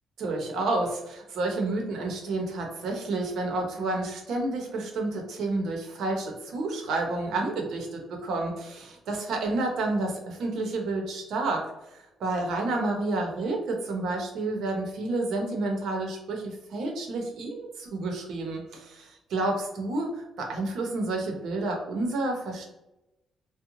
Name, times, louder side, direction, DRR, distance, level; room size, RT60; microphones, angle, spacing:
voice 1, 0.2-11.6 11.9-22.6, right 2 dB, 75° right, 1 dB, 0.7 m, -30 dB
2.5 x 2.1 x 2.9 m, 0.94 s
cardioid pair, 90°, 0 cm